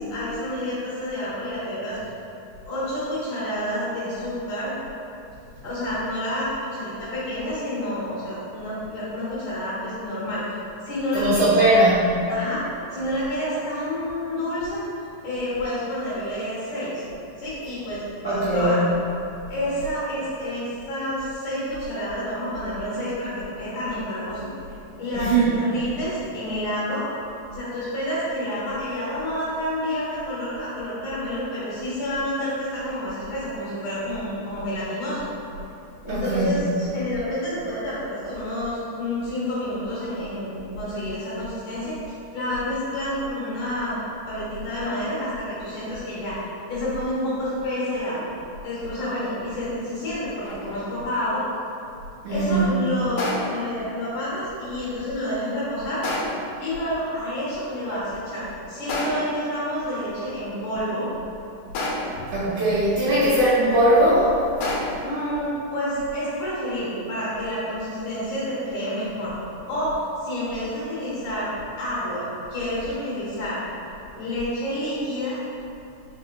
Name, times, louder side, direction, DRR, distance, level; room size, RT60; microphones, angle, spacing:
voice 1, 0.1-2.0 2.6-4.7 5.6-10.4 10.8-11.5 12.3-12.6 12.9-14.8 15.2-17.0 17.4-18.9 19.5-24.5 25.0-27.0 27.5-35.2 36.0-42.0 42.3-44.0 44.3-48.2 48.6-51.4 52.3-56.0 56.6-61.1 63.1-63.2 65.0-69.3 69.7-71.5 71.8-73.6 74.2-75.4, left 1 dB, 65° left, -9 dB, 2.5 m, -29 dB
voice 2, 11.1-12.2 18.2-18.7 25.2-25.5 36.1-36.6 52.2-52.7 62.3-64.3, right 1 dB, 75° right, -10 dB, 2.0 m, -19 dB
sound 1, 50.4-50.9 53.2-53.7 56.0-56.5 58.9-59.5 61.7-62.3 64.6-65.2, left 1 dB, 80° left, 1.7 m, -29 dB
4.8 x 4.7 x 2.2 m, 2.8 s
omnidirectional pair, 4.2 m